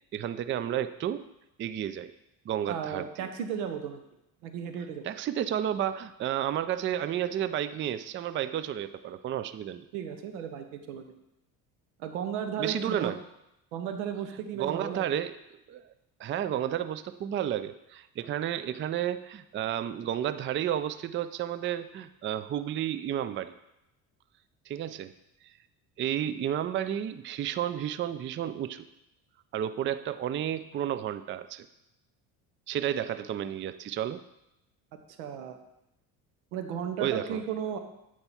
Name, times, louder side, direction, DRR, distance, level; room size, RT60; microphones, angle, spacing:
voice 1, 0.1-1.2 1.6-2.1 2.5-3.3 5.0-9.9 12.6-13.2 14.5-15.4 15.7-15.9 16.2-23.5 24.7-25.1 26.0-28.8 29.5-31.7 32.7-34.2 37.0-37.4, right 10 dB, 30° right, 13 dB, 0.4 m, -31 dB
voice 2, 2.7-4.0 4.4-5.1 9.9-11.1 12.0-13.1 13.7-15.1 35.2-35.6 36.5-37.8, right 8 dB, 85° right, 7 dB, 0.9 m, -35 dB
8.7 x 4.7 x 4.2 m, 0.87 s
supercardioid pair, 70°, 43 cm